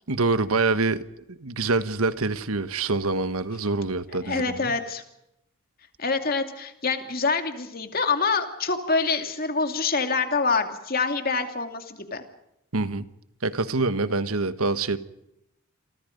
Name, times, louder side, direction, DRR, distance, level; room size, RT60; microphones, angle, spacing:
voice 1, 0.1-4.7 12.7-13.1 13.4-15.0, right 3 dB, 80° right, 1.3 m, -25 dB
voice 2, 4.2-5.0 6.0-12.2, left 4 dB, 40° left, 2.5 m, -26 dB
28.5 x 24.5 x 5.3 m
head